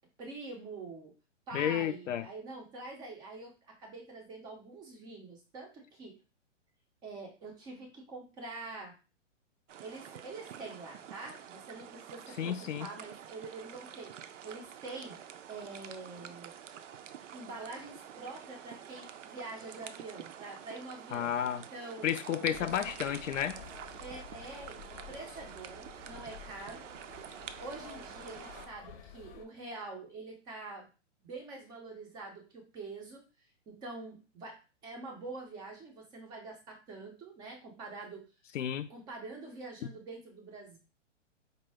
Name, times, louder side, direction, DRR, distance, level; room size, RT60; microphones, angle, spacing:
voice 1, 0.2-1.1 1.5-6.2 7.0-9.0 9.8-15.2 15.5-16.5 17.3-21.4 21.7-22.1 22.4-22.9 24.0-26.8 27.6-30.9 31.2-33.3 33.7-38.3 38.9-40.8, right 3 dB, 10° right, 0.4 m, -45 dB
voice 2, 1.5-2.3 12.4-12.9 21.1-21.6 22.0-23.6 38.5-38.9, left 9 dB, 80° left, 0.5 m, -32 dB
sound 1, 9.7-28.7, right 9 dB, 80° right, 0.5 m, -48 dB
sound 2, 22.5-29.5, left 8 dB, 40° left, 0.7 m, -52 dB
4.3 x 2.0 x 3.3 m
hypercardioid pair, 135°, 37 cm